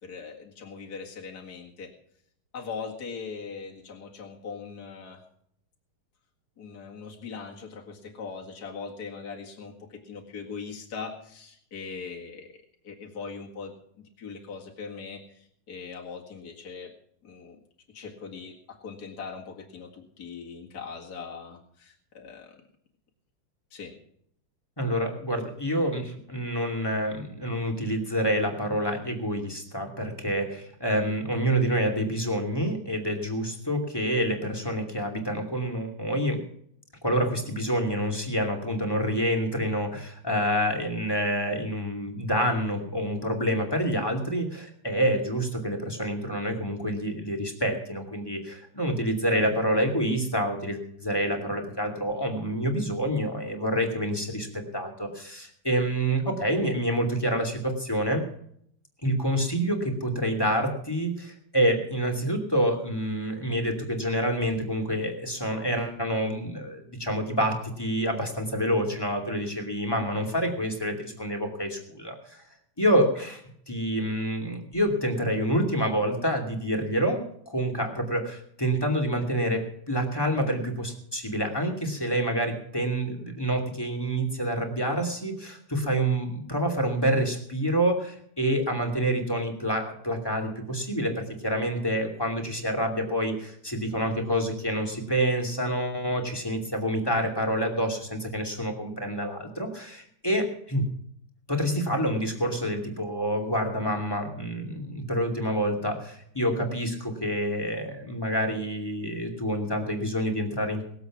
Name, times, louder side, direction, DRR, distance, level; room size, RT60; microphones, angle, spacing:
voice 1, 0.0-1.9 2.5-5.2 6.6-16.9 17.2-17.6 17.9-22.5 23.7-24.0 49.3-49.4, left 5 dB, 45° left, -1 dB, 2.4 m, -40 dB
voice 2, 24.8-36.4 37.0-58.2 59.0-72.4 72.8-73.4 73.7-100.9 101.5-110.8, equal, 10° left, 3 dB, 2.5 m, -27 dB
20.5 x 8.0 x 6.0 m, 0.67 s
omnidirectional pair, 2.4 m